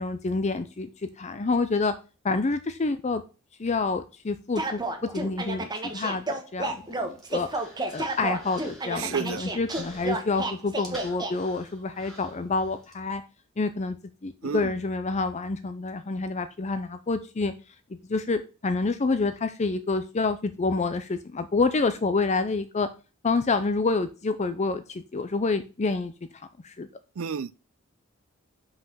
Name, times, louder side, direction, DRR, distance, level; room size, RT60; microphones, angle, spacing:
voice 1, 0.0-1.9 2.2-3.2 3.6-4.8 5.1-7.5 7.9-13.2 13.6-14.0 14.2-17.5 17.9-22.9 23.2-26.1 26.6-26.9, left 3 dB, 35° left, 0.5 m, -28 dB
sound 1, 4.6-11.3, right 2 dB, 20° right, 1.2 m, -31 dB
Human voice, 6.7-12.9, equal, ahead, 2.7 m, -49 dB
voice 2, 9.0-9.4 14.4-14.7 27.2-27.5, right 6 dB, 80° right, 0.5 m, -30 dB
5.7 x 5.4 x 6.1 m
head